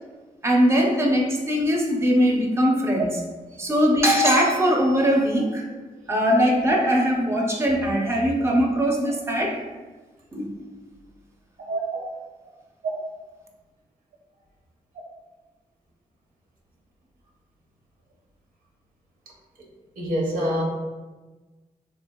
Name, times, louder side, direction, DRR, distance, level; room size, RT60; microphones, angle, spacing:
voice 1, 0.4-3.1 3.6-5.6 6.1-9.6 10.3-10.5, equal, 20° right, 0 dB, 0.6 m, -21 dB
voice 2, 11.7-12.1 20.0-20.6, equal, 80° right, -2 dB, 0.7 m, -26 dB
3.4 x 2.4 x 2.2 m, 1.3 s
supercardioid pair, 45°, 15 cm